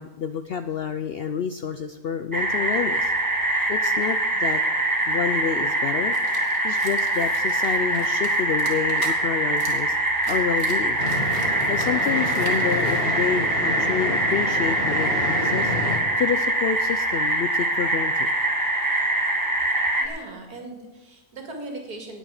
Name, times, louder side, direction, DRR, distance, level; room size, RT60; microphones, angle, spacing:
voice 1, 0.0-3.1 3.7-4.6 5.1-6.2 6.6-11.0 11.7-15.7 16.2-18.3, left 7 dB, 70° left, 10 dB, 0.5 m, -28 dB
sound 1, 2.3-20.1, right 2 dB, 15° right, 1.2 m, -23 dB
sound 2, 6.1-9.2 9.6-9.8 10.1-13.0, right 3 dB, 70° right, 2.3 m, -40 dB
sound 3, 11.0-16.0, left 2 dB, 40° left, 2.1 m, -29 dB
voice 2, 20.0-22.2, right 2 dB, 85° right, 3 dB, 2.8 m, -38 dB
18.5 x 8.0 x 4.8 m, 1.1 s
omnidirectional pair, 1.6 m